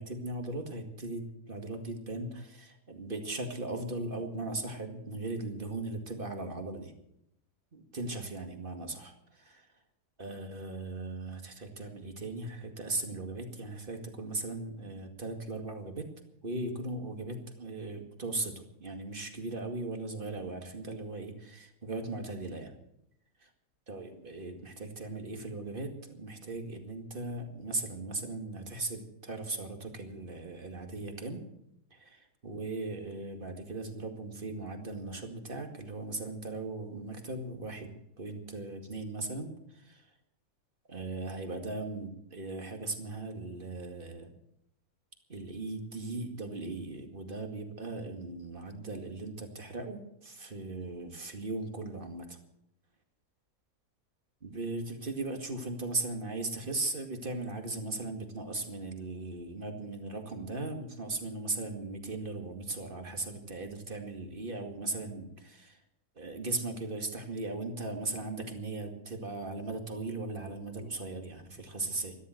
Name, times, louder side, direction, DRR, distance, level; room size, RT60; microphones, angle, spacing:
voice 1, 0.0-6.9 7.7-9.7 10.2-16.1 16.4-22.7 23.4-23.5 23.9-31.4 31.9-40.1 40.9-44.3 45.3-52.4 54.4-65.8 66.2-72.2, right 2 dB, 35° right, 5 dB, 2.3 m, -38 dB
13.5 x 13.0 x 7.8 m, 0.78 s
omnidirectional pair, 1.7 m